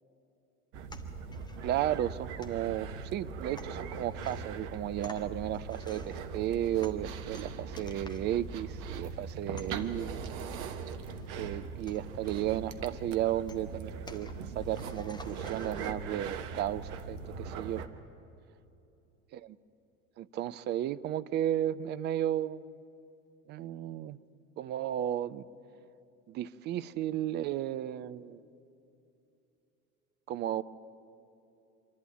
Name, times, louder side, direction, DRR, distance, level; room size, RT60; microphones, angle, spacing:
sound 1, 0.7-17.9, right 5 dB, 50° right, 1.3 m, -40 dB
sound 2, 0.9-15.9, left 2 dB, 10° left, 1.6 m, -55 dB
voice 1, 1.6-10.2 11.4-14.3 14.6-17.8 19.3-19.6 20.2-22.8 23.5-24.2 24.6-25.5 26.3-28.4 30.3-30.6, right 12 dB, 25° right, 15 dB, 0.5 m, -34 dB
26.0 x 11.5 x 9.5 m, 2.8 s
figure-of-eight pair, 70°, 44 cm